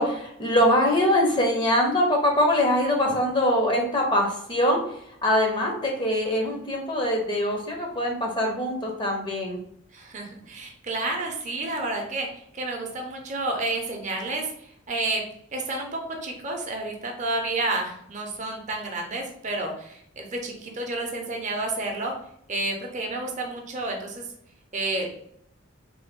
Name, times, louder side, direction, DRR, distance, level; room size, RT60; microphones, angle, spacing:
voice 1, 0.0-4.8 5.2-9.6, left 1 dB, 25° left, 1 dB, 0.6 m, -23 dB
voice 2, 9.9-12.3 12.5-14.5 14.9-15.2 15.5-15.9 16.2-22.1 22.5-24.2 24.7-25.2, right 2 dB, 35° right, 2 dB, 0.6 m, -30 dB
3.2 x 2.1 x 3.6 m, 0.71 s
head